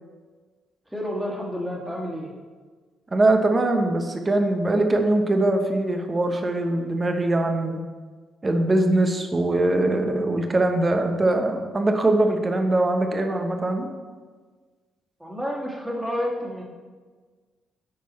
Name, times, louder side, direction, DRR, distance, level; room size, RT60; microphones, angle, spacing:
voice 1, 0.9-2.3 15.2-16.6, equal, 5° right, -3 dB, 2.0 m, -30 dB
voice 2, 3.1-7.8 8.4-13.9, right 2 dB, 30° right, 5 dB, 1.1 m, -22 dB
8.5 x 4.6 x 4.2 m, 1.4 s
supercardioid pair, 55°, 0 cm